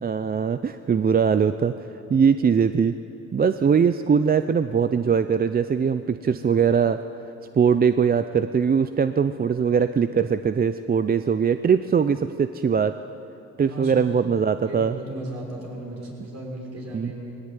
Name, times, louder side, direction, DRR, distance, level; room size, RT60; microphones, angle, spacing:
voice 1, 0.0-1.7 2.1-2.9 3.3-7.0 7.5-12.9 13.6-15.0 16.9-17.1, right 6 dB, 30° right, 11 dB, 0.6 m, -21 dB
voice 2, 13.6-13.9 14.6-17.4, right 1 dB, 60° right, -1 dB, 6.2 m, -35 dB
20.0 x 18.0 x 9.1 m, 3.0 s
cardioid pair, 90°, 30 cm